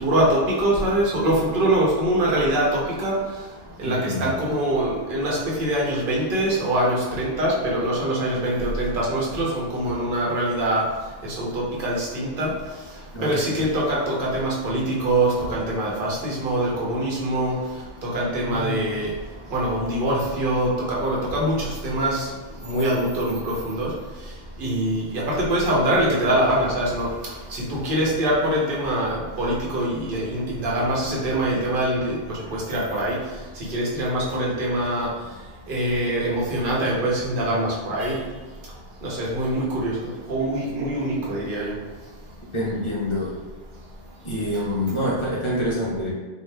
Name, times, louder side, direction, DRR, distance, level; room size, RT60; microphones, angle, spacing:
voice 1, 0.0-2.7 3.0-3.1 3.8-10.8 11.4-12.5 13.2-17.5 18.0-19.1 19.5-22.2 22.6-23.9 24.6-27.1 27.7-32.2 32.7-33.2 33.7-35.1 35.7-38.2 39.0-39.9 40.3-41.7, right 1 dB, 60° right, -4 dB, 1.0 m, -23 dB
voice 2, 3.8-4.2 13.1-13.5 18.3-19.0 42.5-43.3 44.2-46.1, left 1 dB, 30° left, -5 dB, 0.8 m, -27 dB
2.8 x 2.3 x 3.2 m, 1.3 s
omnidirectional pair, 1.0 m